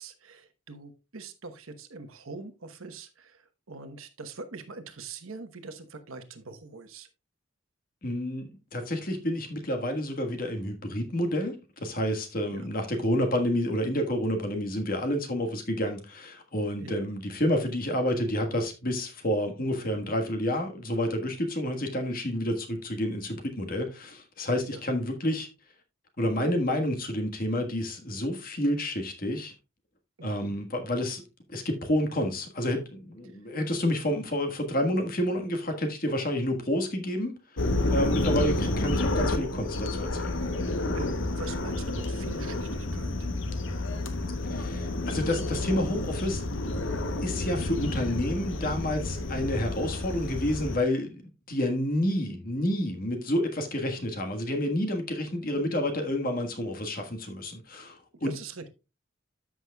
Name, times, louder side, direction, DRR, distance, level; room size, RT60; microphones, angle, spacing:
voice 1, 0.0-3.4 3.7-7.1 12.5-12.7 16.8-17.0 24.7-24.8 30.2-30.5 37.9-38.2 40.9-43.3 58.2-58.8, right 3 dB, 85° right, 1.1 m, -43 dB
voice 2, 8.0-25.5 26.2-29.5 30.2-31.2 31.5-37.3 37.9-40.3 44.5-46.4 47.2-51.2 51.5-58.3, left 1 dB, 45° left, 1.5 m, -29 dB
sound 1, 37.6-50.8, left 2 dB, 65° left, 0.9 m, -30 dB
13.5 x 6.1 x 2.3 m
head